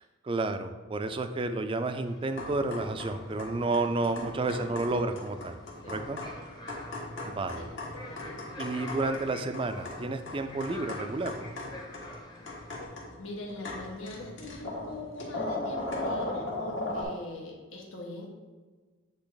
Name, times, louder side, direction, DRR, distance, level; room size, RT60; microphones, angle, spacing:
voice 1, 0.2-5.6 5.9-6.2 7.2-7.7 8.6-11.4, right 2 dB, 25° right, 9 dB, 0.4 m, -31 dB
sound 1, 1.8-12.9, left 1 dB, 20° left, 0.8 m, -49 dB
sound 2, 2.3-17.0, left 2 dB, 70° left, 1.5 m, -38 dB
voice 2, 7.6-8.4 13.2-18.3, left 1 dB, 90° left, -1 dB, 1.5 m, -42 dB
8.1 x 3.4 x 3.9 m, 1.3 s
head